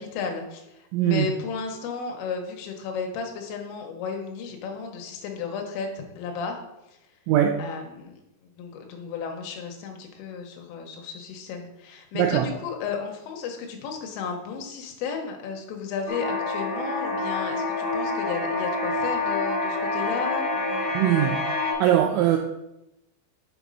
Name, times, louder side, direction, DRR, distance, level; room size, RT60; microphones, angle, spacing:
voice 1, 0.0-6.6 7.6-8.2 8.6-20.9, left 5 dB, 85° left, 2 dB, 3.6 m, -33 dB
voice 2, 0.9-1.3 7.3-7.6 12.1-12.5 20.9-21.4 21.8-22.4, right 11 dB, 85° right, 4 dB, 2.6 m, -21 dB
sound 1, 16.1-21.7, left 3 dB, 35° left, 2.1 m, -27 dB
7.9 x 5.1 x 5.4 m, 0.90 s
omnidirectional pair, 5.9 m